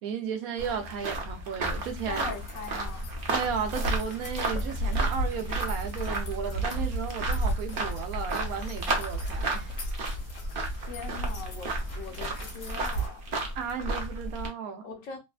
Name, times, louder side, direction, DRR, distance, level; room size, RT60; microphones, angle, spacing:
voice 1, 0.0-2.2 3.3-9.7 13.5-14.9, right 7 dB, 80° right, 1.1 m, -34 dB
sound 1, 0.6-14.5, right 2 dB, 50° right, 0.7 m, -34 dB
sound 2, 1.6-13.1, right 1 dB, 90° left, 1.3 m, -34 dB
voice 2, 2.1-3.1 10.7-13.3 14.8-15.2, left 5 dB, 70° left, 1.2 m, -41 dB
3.3 x 2.2 x 2.3 m
omnidirectional pair, 1.5 m